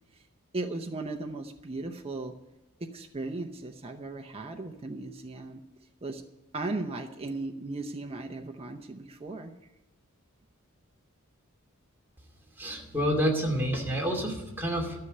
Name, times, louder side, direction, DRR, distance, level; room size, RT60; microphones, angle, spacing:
voice 1, 0.5-2.3 2.8-5.6 6.0-6.2 6.5-9.5, right 2 dB, 30° right, 3 dB, 0.8 m, -36 dB
voice 2, 12.6-15.0, equal, 10° right, 0 dB, 2.5 m, -28 dB
13.0 x 6.8 x 9.7 m, 1.0 s
head